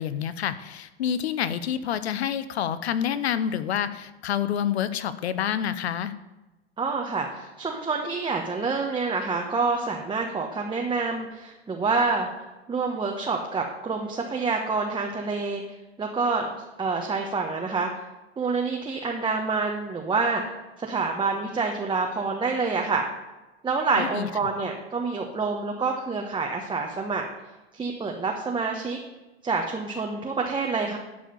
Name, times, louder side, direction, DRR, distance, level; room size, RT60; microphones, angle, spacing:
voice 1, 0.0-6.1 24.0-24.3, left 9 dB, 85° left, 14 dB, 0.8 m, -28 dB
voice 2, 6.8-12.3 12.7-15.6 16.0-16.5 16.8-17.9 18.4-20.4 20.8-23.1 23.6-27.3 27.7-29.0 29.4-31.0, right 4 dB, 15° right, 1 dB, 1.2 m, -27 dB
12.0 x 4.9 x 7.0 m, 1.1 s
hypercardioid pair, 105°, 31 cm